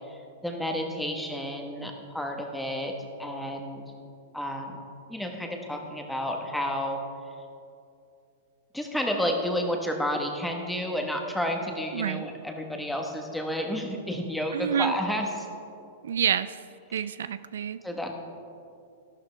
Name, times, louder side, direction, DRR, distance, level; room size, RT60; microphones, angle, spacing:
voice 1, 0.1-2.9 3.2-3.8 4.3-4.8 5.1-7.0 8.7-15.3 16.9-17.0 17.8-18.2, equal, 5° left, 2 dB, 1.2 m, -31 dB
voice 2, 11.9-12.2 14.5-14.9 16.0-16.6 16.9-17.8, right 8 dB, 85° right, 14 dB, 0.3 m, -28 dB
12.5 x 12.0 x 3.4 m, 2.6 s
hypercardioid pair, 140°, 0 cm